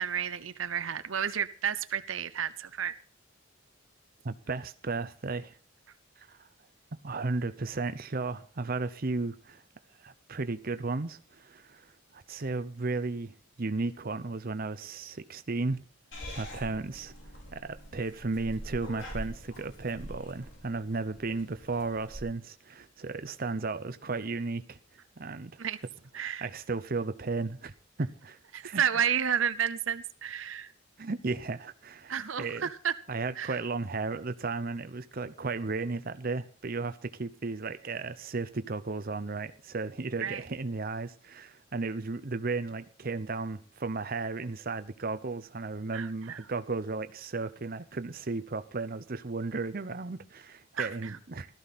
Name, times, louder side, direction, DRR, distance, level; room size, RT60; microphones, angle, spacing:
voice 1, 0.0-3.0 25.6-25.8 26.1-26.5 28.5-30.7 32.1-33.0 33.4-33.6 40.2-40.4 45.9-46.4 50.7-51.2, right 8 dB, 80° right, 0.7 m, -31 dB
voice 2, 4.2-5.6 6.2-6.5 7.0-9.6 10.0-11.9 12.1-15.8 16.3-17.1 17.5-24.8 25.2-25.6 26.2-27.7 28.0-28.8 31.0-32.6 33.1-51.5, right 3 dB, 45° right, 0.7 m, -34 dB
Purr / Meow, 16.1-22.2, equal, 70° left, 5.9 m, -44 dB
16.5 x 13.5 x 4.1 m
head